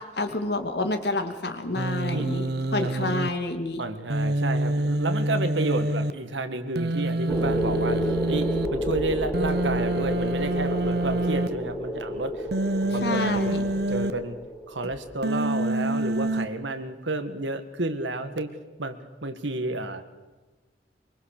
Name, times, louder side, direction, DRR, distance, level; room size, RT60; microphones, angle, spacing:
voice 1, 0.2-2.5 2.7-3.8 13.0-13.6, left 2 dB, 60° left, 6 dB, 2.5 m, -28 dB
Human voice, 1.7-3.3 4.1-6.1 6.7-8.7 9.3-11.5 12.5-14.1 15.2-16.5, right 1 dB, 60° right, 1.0 m, -27 dB
voice 2, 2.8-3.2 3.8-12.5 12.8-14.4 14.7-18.5 18.8-20.0, right 2 dB, 85° right, 9 dB, 2.0 m, -31 dB
sound 1, 7.3-15.1, equal, 5° right, 2.9 m, -30 dB
24.0 x 23.5 x 6.8 m, 1.2 s
head